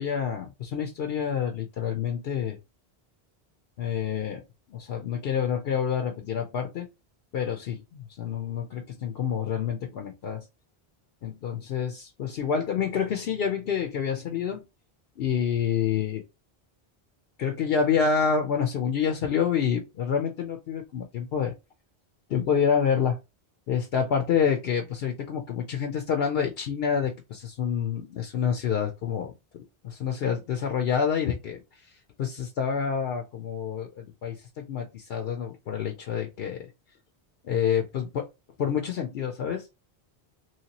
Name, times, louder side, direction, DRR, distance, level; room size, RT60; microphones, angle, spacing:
voice 1, 0.0-2.6 3.8-4.4 4.7-6.9 7.3-10.5 11.2-14.6 15.2-16.2 17.4-21.5 22.3-23.2 23.7-29.3 29.8-36.7 37.4-38.3 38.6-39.7, left 7 dB, 70° left, 0.8 m, -28 dB
3.1 x 2.9 x 2.8 m
omnidirectional pair, 1.1 m